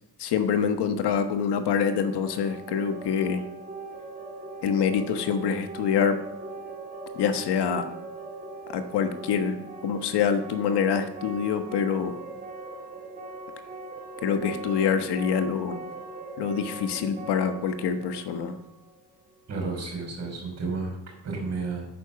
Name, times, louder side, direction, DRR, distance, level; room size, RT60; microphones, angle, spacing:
voice 1, 0.2-3.4 4.6-6.2 7.1-7.9 8.7-9.6 9.8-12.2 14.2-15.8 16.4-18.6, left 7 dB, 70° left, 8 dB, 1.3 m, -26 dB
sound 1, 1.7-19.4, right 3 dB, 20° right, 2.1 m, -40 dB
voice 2, 19.5-21.0 21.2-21.9, right 4 dB, 40° right, 0 dB, 5.3 m, -31 dB
10.0 x 8.9 x 6.9 m, 0.84 s
cardioid pair, 165°, 41 cm